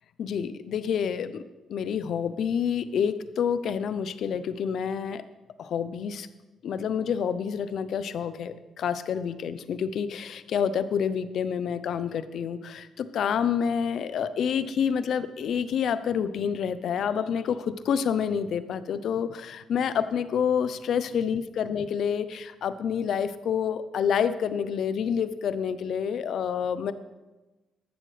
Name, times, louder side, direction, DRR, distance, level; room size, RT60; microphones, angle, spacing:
voice 1, 0.2-1.4 1.7-5.2 5.6-6.3 6.6-26.9, left 7 dB, 65° left, 13 dB, 0.7 m, -28 dB
14.0 x 12.0 x 3.4 m, 1.1 s
cardioid pair, 90°, 0 cm